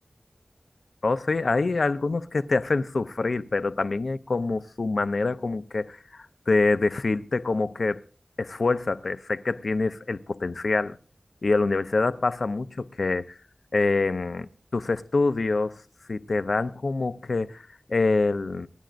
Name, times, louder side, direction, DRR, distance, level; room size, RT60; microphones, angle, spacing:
voice 1, 1.0-8.0 8.4-11.0 11.4-13.4 13.7-15.8 16.1-18.7, left 3 dB, 80° left, 0.6 m, -26 dB
27.0 x 10.5 x 2.5 m
wide cardioid pair, 55°, 0 cm